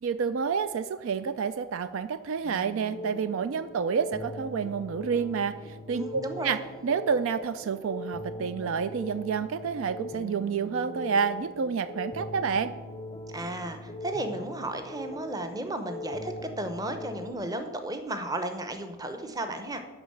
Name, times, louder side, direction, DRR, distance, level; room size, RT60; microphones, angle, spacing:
voice 1, 0.0-12.8, right 6 dB, 65° right, 12 dB, 0.3 m, -29 dB
sound 1, 2.4-17.3, left 1 dB, 25° left, 0.6 m, -41 dB
voice 2, 5.9-6.6 13.3-19.8, right 1 dB, 15° right, 7 dB, 0.7 m, -34 dB
11.0 x 4.0 x 7.7 m, 1.3 s
head